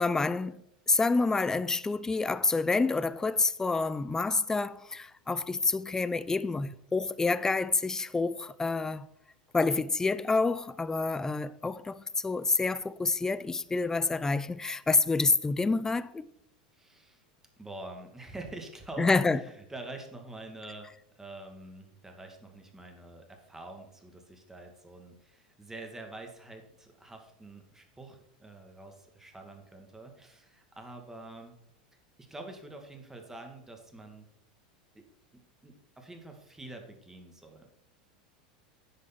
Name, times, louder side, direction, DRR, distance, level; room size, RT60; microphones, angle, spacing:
voice 1, 0.0-9.1 9.5-16.3 19.0-19.4, left 3 dB, 15° left, 0.5 m, -28 dB
voice 2, 16.7-17.2 17.6-20.9 21.2-31.5 31.9-34.3 34.9-35.1 35.6-37.7, right 2 dB, 10° right, 2.3 m, -46 dB
9.9 x 6.7 x 6.0 m
hypercardioid pair, 95°, 4 cm